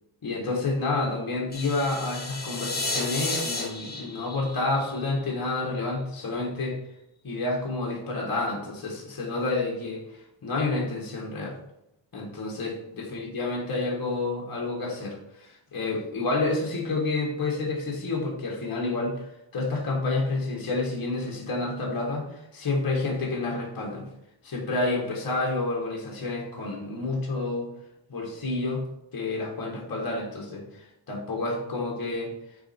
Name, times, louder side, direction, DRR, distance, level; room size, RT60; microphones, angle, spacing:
voice 1, 0.2-6.8 7.2-10.0 10.4-11.6 12.1-19.2 19.5-24.1 24.4-27.7 28.1-28.8 29.1-32.3, left 3 dB, 45° left, -2 dB, 1.6 m, -29 dB
sound 1, 1.5-5.6, left 2 dB, 20° left, 1.1 m, -33 dB
9.0 x 3.3 x 4.4 m, 0.83 s
wide cardioid pair, 145°, 48 cm